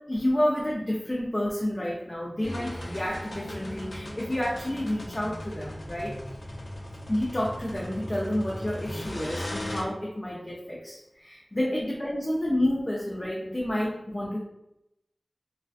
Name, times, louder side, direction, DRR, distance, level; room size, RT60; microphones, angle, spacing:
voice 1, 0.1-6.1 7.1-14.4, left 1 dB, 30° left, -5 dB, 0.5 m, -29 dB
sound 1, 2.4-9.8, left 1 dB, 80° left, 0.6 m, -37 dB
2.4 x 2.2 x 2.4 m, 0.86 s
wide cardioid pair, 45°, 0 cm